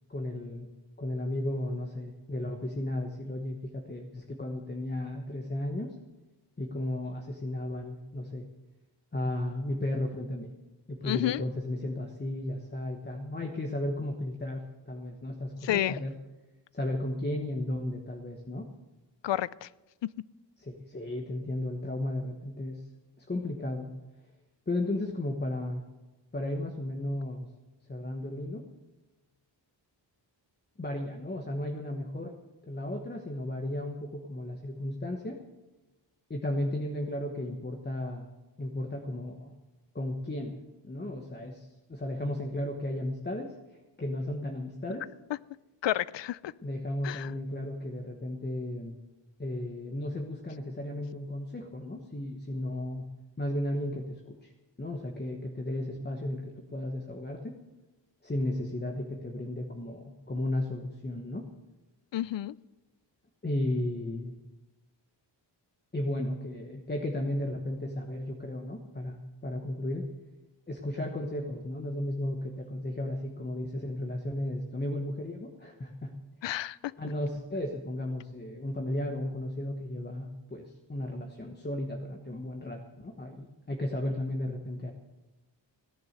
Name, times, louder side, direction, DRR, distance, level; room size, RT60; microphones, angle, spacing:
voice 1, 0.1-0.7 1.0-5.9 6.6-8.5 9.1-10.5 10.9-16.1 16.7-18.7 20.6-22.8 23.2-23.9 24.7-25.8 26.3-27.5 27.9-28.6 30.8-32.3 32.6-35.4 36.3-38.3 38.6-39.5 39.9-40.6 40.8-43.5 44.0-45.1 46.6-49.0 49.4-53.0 53.4-54.5 54.8-57.6 58.2-61.5 63.4-64.3 65.9-69.2 69.4-70.1 70.7-76.1 77.0-84.9, left 1 dB, 20° left, 2 dB, 1.2 m, -34 dB
voice 2, 11.0-11.4 15.6-16.0 19.2-19.7 45.8-46.5 47.0-47.3 62.1-62.5 76.4-76.8, left 13 dB, 70° left, 20 dB, 0.5 m, -30 dB
17.0 x 10.5 x 6.6 m, 1.1 s
wide cardioid pair, 130°, 45 cm